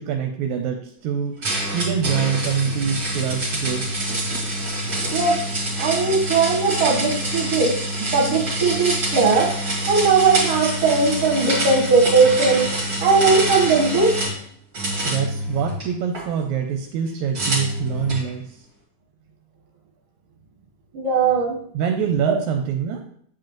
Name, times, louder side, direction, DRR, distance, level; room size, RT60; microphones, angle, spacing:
voice 1, 0.0-4.1 15.1-18.7 21.7-23.0, right 7 dB, 80° right, 4 dB, 2.0 m, -25 dB
sound 1, 1.4-14.4 14.7-16.2 17.3-18.3, right 1 dB, 35° right, 2.3 m, -26 dB
voice 2, 5.1-5.4 5.8-7.8 8.1-9.6 9.9-12.7 13.0-14.2 20.9-21.6, right 4 dB, 60° right, 1 dB, 2.1 m, -18 dB
7.6 x 7.5 x 3.0 m, 0.63 s
omnidirectional pair, 3.4 m